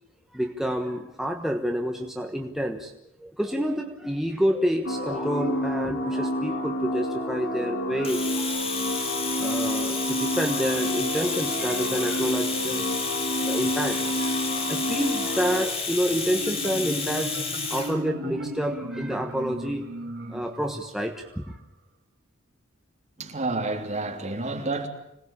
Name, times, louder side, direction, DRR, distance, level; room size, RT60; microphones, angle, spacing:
voice 1, 0.3-2.9 3.2-12.9 13.4-17.4 17.7-19.9 20.3-21.6, equal, ahead, 1.2 m, -29 dB
sound 1, 4.8-15.7, equal, 60° left, 2.4 m, -29 dB
Domestic sounds home sounds, 8.0-17.9, left 4 dB, 30° left, 3.4 m, -31 dB
Marimba xylophone, 15.9-21.5, right 1 dB, 55° right, 3.1 m, -36 dB
voice 2, 23.2-24.9, right 2 dB, 35° right, 3.4 m, -29 dB
26.0 x 18.5 x 8.6 m
head